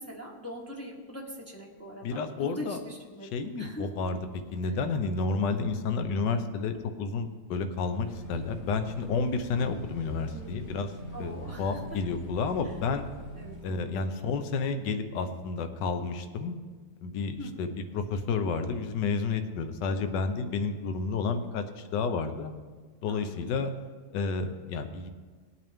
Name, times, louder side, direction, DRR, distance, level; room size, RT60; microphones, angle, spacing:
voice 1, 0.0-3.9 4.6-4.7 10.3-10.6 11.1-12.0 12.6-12.7 13.3-14.0 17.4-17.7 23.1-23.6, equal, 10° left, -2 dB, 1.3 m, -42 dB
voice 2, 2.0-2.8 3.3-4.2 4.5-10.9 11.2-13.1 13.6-16.5 17.0-22.5 23.0-23.7 24.1-25.1, left 4 dB, 60° left, 8 dB, 1.4 m, -31 dB
sound 1, 8.0-13.6, right 1 dB, 35° left, 1.8 m, -43 dB
20.0 x 8.8 x 3.6 m, 1.5 s
omnidirectional pair, 2.3 m